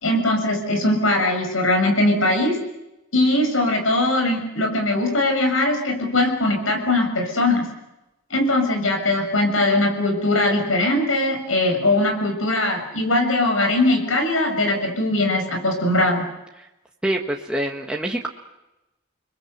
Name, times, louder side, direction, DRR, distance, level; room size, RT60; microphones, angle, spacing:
voice 1, 0.0-2.6 3.1-7.6 8.3-16.2, left 2 dB, 80° left, 4 dB, 6.6 m, -20 dB
voice 2, 17.0-18.3, right 1 dB, 5° right, 0 dB, 1.5 m, -25 dB
30.0 x 21.5 x 8.1 m, 0.97 s
head